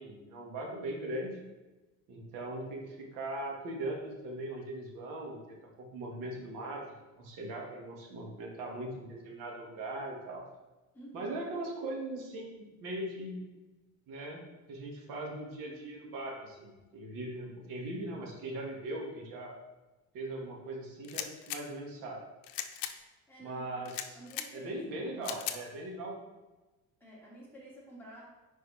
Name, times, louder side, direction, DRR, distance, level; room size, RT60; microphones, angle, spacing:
voice 1, 0.0-1.4 2.1-6.9 7.2-10.4 11.1-13.4 14.1-14.4 14.7-19.6 20.1-22.2 23.4-24.2 24.5-26.2, right 1 dB, 75° right, 0 dB, 1.9 m, -40 dB
voice 2, 10.9-11.4 23.3-23.9 24.2-24.8 25.0-25.6 27.0-28.2, right 1 dB, 5° left, -7 dB, 2.5 m, -51 dB
sound 1, 21.0-21.6 22.4-22.9 23.8-24.5 25.2-25.6, left 11 dB, 80° left, 0.7 m, -38 dB
10.0 x 4.6 x 3.3 m, 1.1 s
cardioid pair, 155°, 34 cm